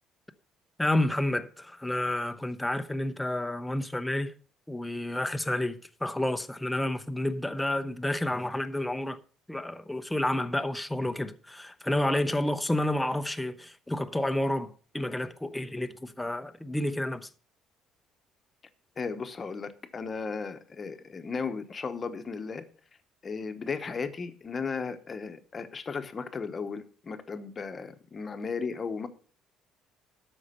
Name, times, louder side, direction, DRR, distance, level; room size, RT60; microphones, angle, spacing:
voice 1, 0.8-4.3 4.7-9.2 9.5-17.3, left 1 dB, 5° left, 0.6 m, -30 dB
voice 2, 19.0-22.7 23.2-29.1, left 5 dB, 25° left, 1.0 m, -35 dB
13.0 x 5.4 x 6.7 m
cardioid pair, 160°, 0 cm